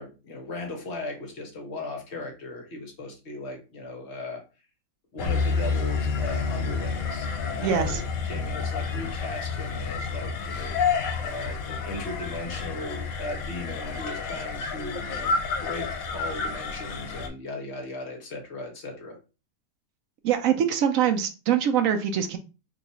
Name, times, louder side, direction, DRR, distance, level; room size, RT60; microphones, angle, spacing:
voice 1, 0.0-4.4 5.1-19.2, left 2 dB, 55° left, 2 dB, 1.0 m, -37 dB
sound 1, 5.2-17.3, left 5 dB, 80° left, 1.0 m, -31 dB
sound 2, 5.2-10.4, left 4 dB, 55° right, 1.3 m, -31 dB
voice 2, 7.6-7.9 20.2-22.4, right 9 dB, 75° right, 6 dB, 0.9 m, -23 dB
2.9 x 2.3 x 4.0 m, 0.31 s
omnidirectional pair, 1.5 m